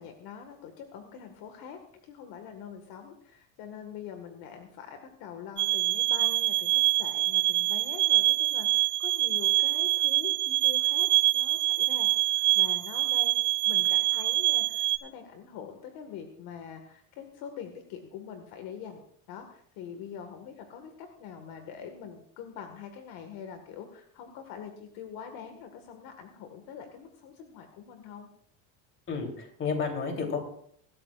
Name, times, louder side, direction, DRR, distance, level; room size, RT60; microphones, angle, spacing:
voice 1, 0.0-28.3, left 7 dB, 60° left, 5 dB, 1.8 m, -44 dB
sound 1, 5.6-15.0, right 16 dB, 25° right, 1.4 m, -25 dB
voice 2, 29.1-30.4, left 5 dB, 30° left, 3 dB, 3.3 m, -31 dB
24.0 x 13.0 x 2.4 m, 0.62 s
cardioid pair, 150°, 40 cm